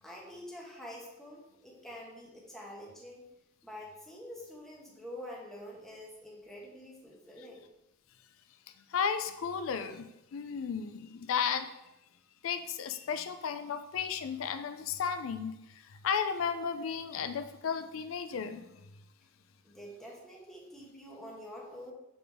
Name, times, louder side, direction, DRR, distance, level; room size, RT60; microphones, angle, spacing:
voice 1, 0.0-3.2 3.6-7.7 19.6-21.9, equal, ahead, -3 dB, 1.2 m, -47 dB
voice 2, 8.9-11.7 12.4-18.7, left 6 dB, 85° left, 9 dB, 0.4 m, -34 dB
6.8 x 3.9 x 3.5 m, 0.90 s
head